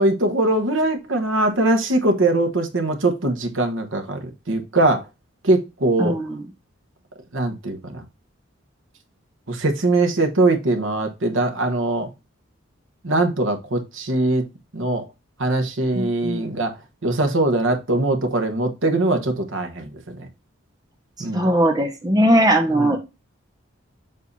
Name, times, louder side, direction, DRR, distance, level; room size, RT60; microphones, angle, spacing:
voice 1, 0.0-4.2 4.5-5.0 5.4-6.2 7.3-8.0 9.5-12.1 13.0-14.5 14.7-15.0 15.4-16.7 17.0-19.9 20.2-20.3 21.2-21.5 22.8-22.9, right 2 dB, 75° right, 1.2 m, -21 dB
voice 2, 6.0-6.4 15.9-16.4 21.3-23.0, right 1 dB, 20° right, 1.0 m, -19 dB
7.6 x 2.8 x 5.3 m
head